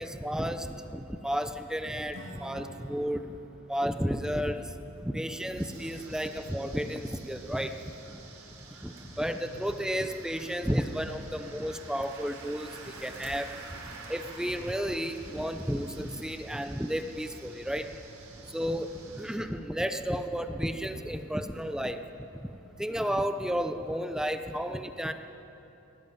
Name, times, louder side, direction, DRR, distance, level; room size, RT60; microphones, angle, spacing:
voice 1, 0.0-3.2 3.7-4.6 5.0-7.7 8.8-12.7 13.0-13.5 14.1-17.9 18.5-18.9 19.2-22.0 22.8-25.1, equal, 5° right, 7 dB, 0.8 m, -32 dB
Acoustic guitar / Strum, 2.1-8.1, right 1 dB, 65° right, 2.4 m, -51 dB
sound 1, 5.6-19.4, right 2 dB, 85° right, 4.1 m, -48 dB
20.0 x 17.5 x 9.2 m, 3.0 s
head